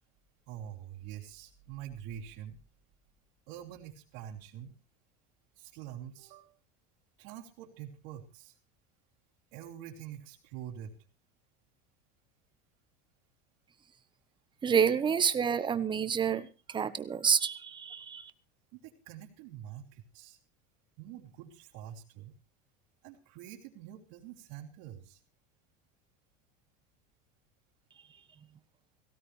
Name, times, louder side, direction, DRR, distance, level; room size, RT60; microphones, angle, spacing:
voice 1, 0.5-2.6 3.5-4.7 5.6-6.5 7.2-8.6 9.5-10.9 18.7-20.4 21.0-22.3 23.0-25.2, right 10 dB, 70° right, -4 dB, 3.0 m, -46 dB
voice 2, 14.6-18.3, right 7 dB, 25° right, 13 dB, 1.1 m, -28 dB
18.0 x 16.0 x 3.3 m, 0.31 s
supercardioid pair, 120°, 20 cm